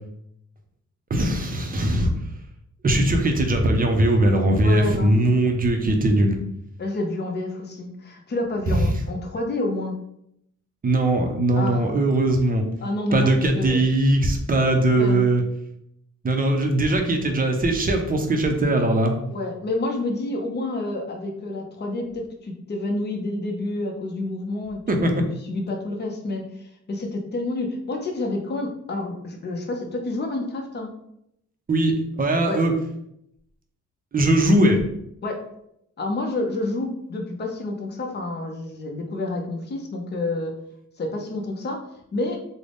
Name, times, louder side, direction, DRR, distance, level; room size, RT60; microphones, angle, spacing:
voice 1, 1.1-2.1 2.8-6.4 10.8-12.6 13.1-15.4 16.2-19.1 24.9-25.1 31.7-32.7 34.1-34.8, right 1 dB, 30° right, 4 dB, 0.5 m, -20 dB
voice 2, 4.6-5.2 6.8-10.0 11.5-11.9 12.8-13.8 14.9-15.3 19.3-25.1 25.4-30.9 32.5-32.6 35.2-35.4 36.0-40.5 41.0-41.8 42.1-42.4, left 2 dB, 35° left, 2 dB, 0.6 m, -29 dB
3.7 x 2.0 x 3.4 m, 0.75 s
wide cardioid pair, 145°, 30 cm